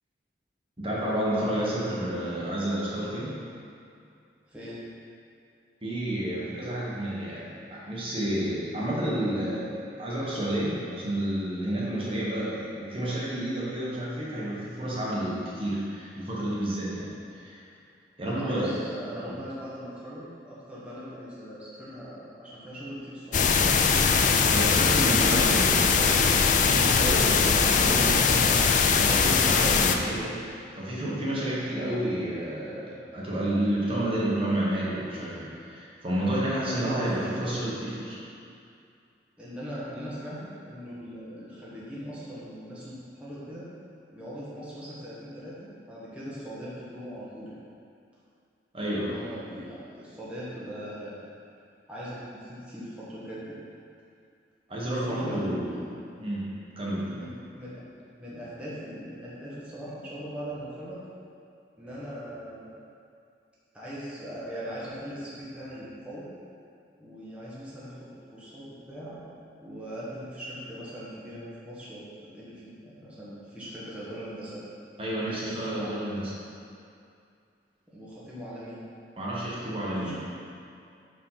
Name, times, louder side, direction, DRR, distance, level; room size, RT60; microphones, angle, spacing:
voice 1, 0.8-3.4 5.8-17.6 18.2-18.8 19.3-19.4 24.5-26.4 26.6-38.2 48.7-49.1 54.7-55.8 56.2-56.5 56.8-57.2 75.0-76.2 79.2-80.2, right 1 dB, 30° right, -7 dB, 1.3 m, -30 dB
voice 2, 4.5-4.8 18.2-23.6 25.0-25.4 36.7-37.6 39.4-43.7 44.1-47.6 48.9-51.3 51.9-53.6 54.9-55.8 57.1-61.0 61.8-62.8 63.7-66.3 67.0-69.2 69.6-72.1 72.3-74.6 75.2-76.1 77.9-78.8 80.0-80.2, equal, 5° right, -10 dB, 1.2 m, -40 dB
sound 1, 23.3-30.0, left 5 dB, 45° left, 0.4 m, -21 dB
5.3 x 5.2 x 5.7 m, 2.4 s
head